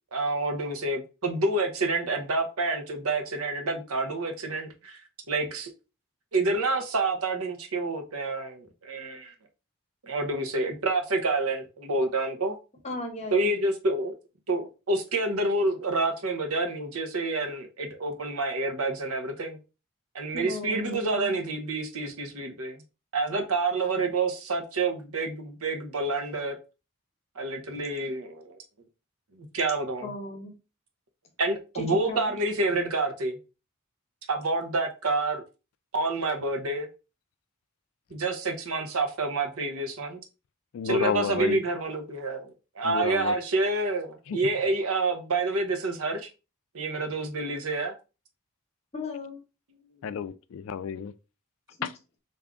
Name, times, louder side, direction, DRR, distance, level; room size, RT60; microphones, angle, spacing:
voice 1, 0.1-5.0 5.3-5.7 6.3-9.3 10.0-12.6 13.3-14.2 14.5-19.6 20.1-22.8 23.1-26.6 27.4-28.6 29.5-30.1 31.4-33.4 34.3-35.4 35.9-36.9 38.1-40.2 40.8-42.5 42.7-46.3 46.7-47.9, right 2 dB, 85° right, 0.8 m, -28 dB
voice 2, 12.8-13.5 20.3-21.4 30.0-30.5 31.7-32.3 41.4-41.6 48.9-49.4, left 2 dB, 30° left, 0.9 m, -36 dB
voice 3, 40.7-41.6 42.8-43.4 44.3-44.4 50.0-51.1, left 7 dB, 70° left, 0.3 m, -31 dB
3.5 x 2.6 x 3.5 m
head